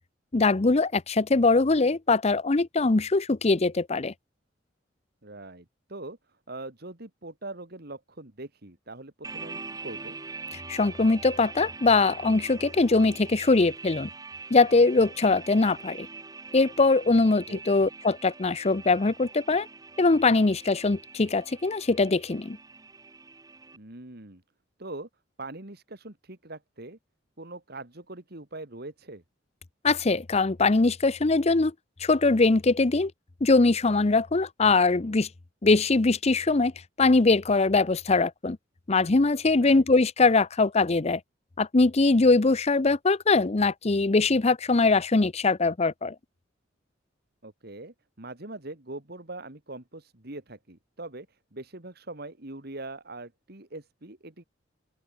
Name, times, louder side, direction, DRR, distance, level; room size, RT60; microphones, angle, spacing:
voice 1, 0.3-4.1 10.7-14.1 14.5-16.1 16.5-19.7 20.0-22.6 29.8-31.7 32.0-33.1 33.4-35.3 35.6-36.7 37.0-38.6 38.9-41.2 41.6-46.1, left 3 dB, 35° left, 0.7 m, -22 dB
voice 2, 5.2-6.2 6.5-10.2 17.5-17.6 23.7-24.4 24.8-25.1 25.4-27.0 27.4-29.2 39.6-39.8 47.4-54.4, right 2 dB, 55° right, 2.6 m, -42 dB
sound 1, 9.2-23.8, right 4 dB, 20° right, 1.8 m, -43 dB
open air
head